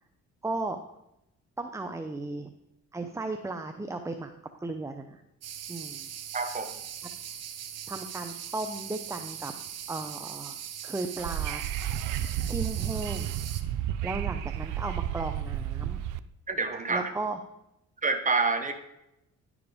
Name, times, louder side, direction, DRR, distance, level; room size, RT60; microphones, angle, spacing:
voice 1, 0.4-0.8 1.6-2.5 2.9-4.3 4.6-5.2 5.7-6.1 7.9-9.5 9.9-10.6 10.8-11.6 12.5-13.3 14.0-16.0 16.9-17.4, right 2 dB, 10° right, 7 dB, 0.5 m, -35 dB
sound 1, 5.4-13.6, right 9 dB, 55° right, 0.8 m, -40 dB
voice 2, 6.3-6.7 16.5-17.1 18.0-18.7, right 4 dB, 25° right, 7 dB, 1.1 m, -27 dB
Wind / Subway metro underground, 11.2-16.2, right 11 dB, 90° right, 0.5 m, -32 dB
10.0 x 5.0 x 4.9 m, 0.86 s
cardioid pair, 90°, 30 cm